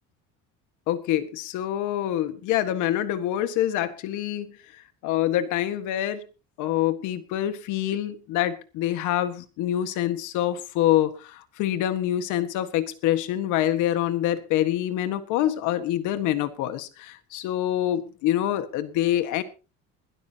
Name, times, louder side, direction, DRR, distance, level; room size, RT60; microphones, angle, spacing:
voice 1, 0.9-4.5 5.0-6.2 6.6-19.4, left 12 dB, 80° left, 11 dB, 1.7 m, -26 dB
21.5 x 12.5 x 2.9 m, 0.32 s
cardioid pair, 150°, 30 cm